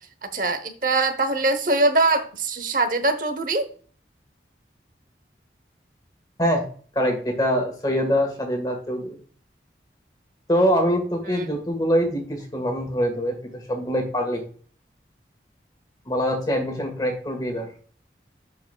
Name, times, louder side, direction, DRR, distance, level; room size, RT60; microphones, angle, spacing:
voice 1, 0.3-3.7 11.3-11.5, right 2 dB, 50° right, 9 dB, 1.0 m, -22 dB
voice 2, 6.9-9.2 10.5-14.4 16.0-17.7, equal, 20° left, 3 dB, 1.7 m, -24 dB
11.5 x 5.2 x 2.3 m, 0.43 s
head